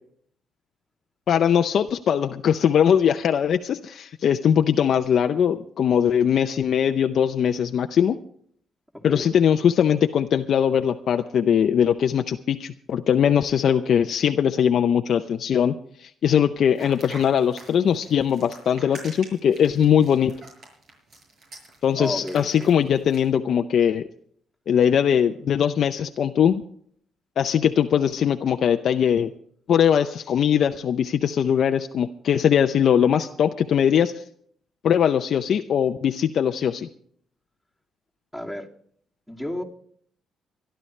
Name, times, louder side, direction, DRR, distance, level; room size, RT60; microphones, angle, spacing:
voice 1, 1.3-8.2 9.0-15.8 16.0-20.3 21.8-24.1 24.7-26.6 27.4-29.3 29.7-34.1 34.8-36.9, left 8 dB, 65° left, 6 dB, 0.6 m, -21 dB
voice 2, 8.9-9.3 22.0-22.7 38.3-38.7 39.3-39.6, left 1 dB, 5° right, 0 dB, 2.7 m, -32 dB
sound 1, 16.8-23.3, right 2 dB, 60° right, 7.1 m, -45 dB
25.0 x 11.5 x 3.3 m, 0.62 s
cardioid pair, 90°, 0 cm